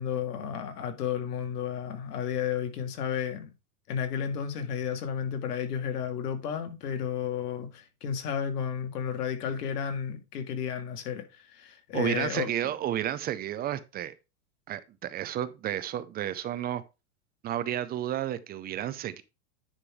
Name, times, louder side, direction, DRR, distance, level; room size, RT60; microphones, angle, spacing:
voice 1, 0.0-3.5 3.9-12.5, left 8 dB, 90° left, 2.0 m, -32 dB
voice 2, 11.9-14.1 14.7-16.8 17.4-19.2, right 11 dB, 20° right, 0.5 m, -32 dB
10.0 x 3.7 x 4.8 m
supercardioid pair, 130°, 46 cm